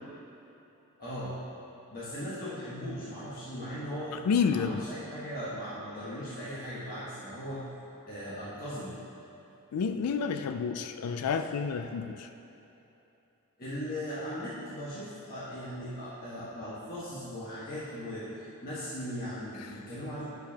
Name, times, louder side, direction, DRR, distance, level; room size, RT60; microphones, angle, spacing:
voice 1, 1.0-1.4 1.9-4.2 4.5-7.6 8.1-9.0 13.6-20.3, equal, 40° left, -10 dB, 1.5 m, -38 dB
voice 2, 4.3-4.9 9.7-12.3, left 6 dB, 85° left, 8 dB, 0.4 m, -29 dB
11.0 x 6.7 x 2.9 m, 3.0 s
head